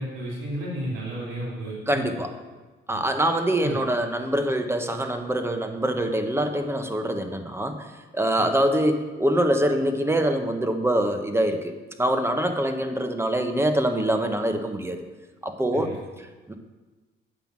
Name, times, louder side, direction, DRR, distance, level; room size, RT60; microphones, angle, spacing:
voice 1, 0.0-2.1 2.9-3.0 3.6-3.8 15.7-16.0, right 1 dB, 80° right, -5 dB, 2.7 m, -32 dB
voice 2, 1.9-2.3 2.9-7.9 8.1-11.7 12.0-15.0 15.4-15.9 16.5-16.6, right 1 dB, 10° right, 6 dB, 1.1 m, -24 dB
9.1 x 5.6 x 7.5 m, 1.2 s
cardioid pair, 90°, 20 cm